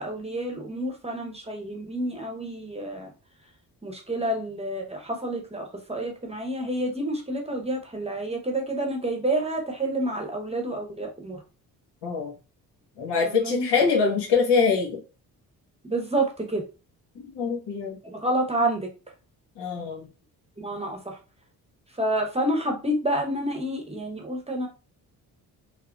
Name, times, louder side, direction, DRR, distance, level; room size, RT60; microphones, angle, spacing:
voice 1, 0.0-3.1 3.8-11.4 13.3-13.7 15.8-16.6 18.0-18.9 20.6-21.2 21.9-24.7, right 1 dB, 15° right, 2 dB, 0.9 m, -29 dB
voice 2, 12.0-12.3 13.0-15.0 17.1-18.0 19.6-20.1, left 5 dB, 70° left, 1 dB, 1.2 m, -24 dB
3.5 x 2.1 x 2.4 m, 0.32 s
supercardioid pair, 55°, 42 cm